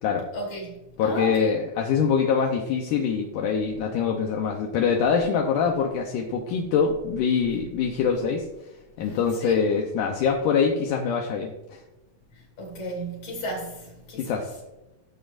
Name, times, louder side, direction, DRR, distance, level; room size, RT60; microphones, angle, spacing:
voice 1, 0.3-1.6 9.0-9.6 12.3-14.4, right 1 dB, 45° left, 3.4 m, -34 dB
voice 2, 1.0-8.5 9.0-11.8 14.2-14.6, left 6 dB, 70° left, 2.0 m, -24 dB
16.5 x 7.4 x 2.6 m
omnidirectional pair, 4.4 m